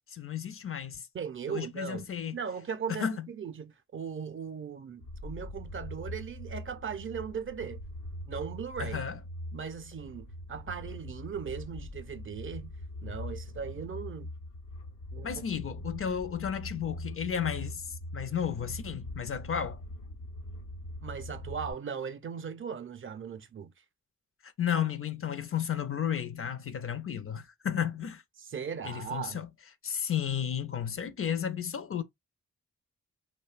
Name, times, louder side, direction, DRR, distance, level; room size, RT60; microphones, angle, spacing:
voice 1, 0.1-1.1 1.5-2.4 2.9-3.3 8.8-9.2 15.2-19.8 24.4-28.2 28.8-29.5 29.8-32.0, left 8 dB, 45° left, 0.5 m, -33 dB
voice 2, 1.1-7.8 8.3-9.0 9.5-12.7 13.0-14.3 15.1-15.4 21.0-23.7 28.4-29.4, right 7 dB, 45° right, 0.5 m, -38 dB
sound 1, 5.0-21.7, left 1 dB, 90° left, 0.8 m, -42 dB
2.7 x 2.1 x 2.3 m
cardioid pair, 45°, 30 cm